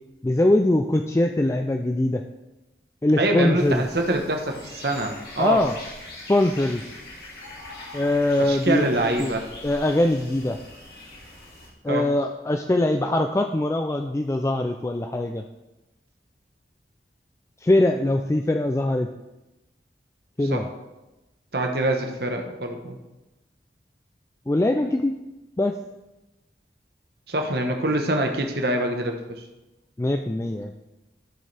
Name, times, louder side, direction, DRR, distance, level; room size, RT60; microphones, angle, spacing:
voice 1, 0.2-2.2 3.0-3.8 5.4-5.7 6.3-6.8 7.9-8.9 9.2-9.3 9.6-10.6 11.8-15.4 17.6-19.1 20.4-20.7 24.5-25.2 25.6-25.8 30.0-30.7, left 1 dB, 15° left, 5 dB, 0.3 m, -22 dB
voice 2, 3.2-5.6 8.5-9.5 11.9-12.1 20.5-20.6 21.5-23.0 27.3-29.4, right 1 dB, 60° right, 3 dB, 1.1 m, -25 dB
sound 1, 3.5-11.7, left 2 dB, 65° left, 2.7 m, -42 dB
12.5 x 6.6 x 3.4 m, 1.0 s
head